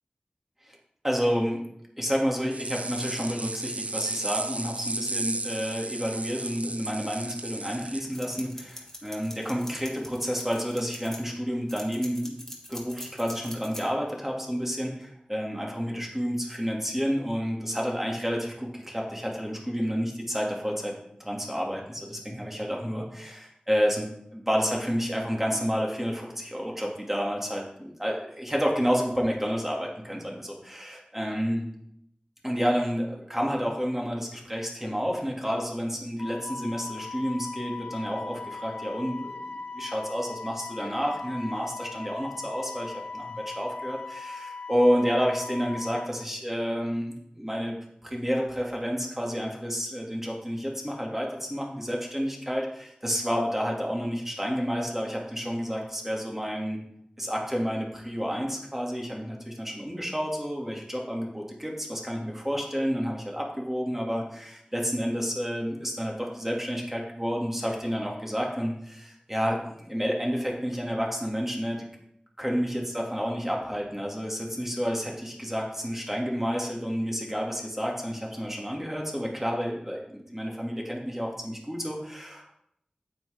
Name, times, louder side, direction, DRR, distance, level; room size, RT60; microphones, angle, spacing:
voice 1, 1.0-1.6 2.0-12.4 12.7-20.9 21.2-31.7 32.4-47.7 48.0-56.8 57.2-71.8 72.4-82.5, equal, 10° right, -1 dB, 2.1 m, -30 dB
sound 1, 2.5-8.0, right 2 dB, 55° right, 0.5 m, -34 dB
sound 2, 8.0-11.2 11.7-13.8, left 1 dB, 15° left, 1.8 m, -42 dB
Wind instrument woodwind instrument, 36.2-46.1, left 3 dB, 50° left, 1.1 m, -39 dB
8.9 x 8.1 x 3.4 m, 0.75 s
wide cardioid pair, 55°, 3 cm